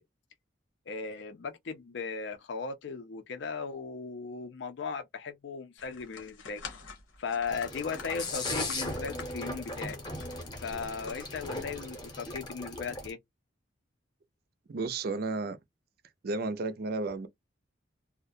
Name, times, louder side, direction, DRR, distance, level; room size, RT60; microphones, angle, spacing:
voice 1, 0.9-6.6 7.2-10.0 10.6-13.2, left 5 dB, 65° left, 0.4 m, -37 dB
sound 1, 5.8-11.9, left 5 dB, 90° left, 0.9 m, -47 dB
sound 2, 7.5-13.1, left 2 dB, 25° left, 0.7 m, -38 dB
voice 2, 14.7-15.6 16.2-17.3, right 3 dB, 50° right, 0.4 m, -32 dB
2.3 x 2.1 x 2.6 m
head